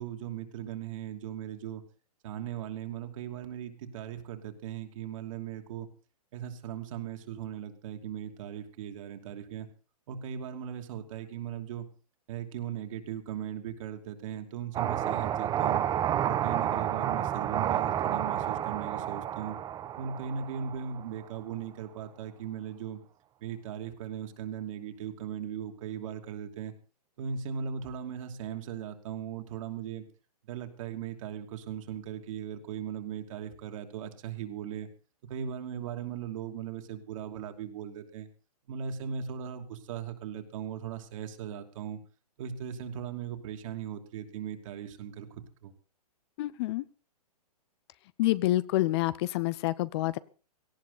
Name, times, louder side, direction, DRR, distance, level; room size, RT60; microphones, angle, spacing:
voice 1, 0.0-1.8 2.2-5.9 6.3-9.7 10.1-11.9 12.3-15.8 16.2-19.6 20.0-23.0 23.4-26.7 27.2-30.1 30.5-34.9 35.3-38.3 38.7-42.0 42.4-45.7, right 8 dB, 55° right, 5 dB, 2.9 m, -38 dB
sound 1, 14.7-21.2, right 10 dB, 20° right, 1.0 m, -30 dB
voice 2, 46.4-46.8 48.2-50.2, left 17 dB, 40° left, 19 dB, 0.7 m, -27 dB
18.0 x 14.5 x 4.2 m, 0.37 s
hypercardioid pair, 130°, 20 cm